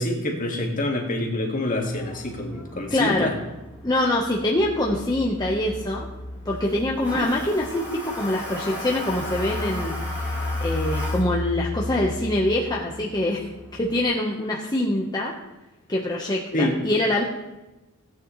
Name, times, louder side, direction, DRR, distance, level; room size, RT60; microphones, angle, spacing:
voice 1, 0.0-3.4 16.5-16.8, left 1 dB, 40° left, 1 dB, 1.9 m, -26 dB
Toilet flush, 1.8-14.0, left 1 dB, 10° right, 4.7 m, -38 dB
voice 2, 2.9-3.3 3.8-6.1 6.4-10.0 10.2-10.3 10.6-13.4 13.7-15.3 15.9-17.2, left 1 dB, 20° left, -3 dB, 1.1 m, -24 dB
sound 1, 4.3-8.2 8.5-13.1, left 2 dB, 65° left, 1.4 m, -33 dB
16.5 x 9.2 x 3.2 m, 1.0 s
head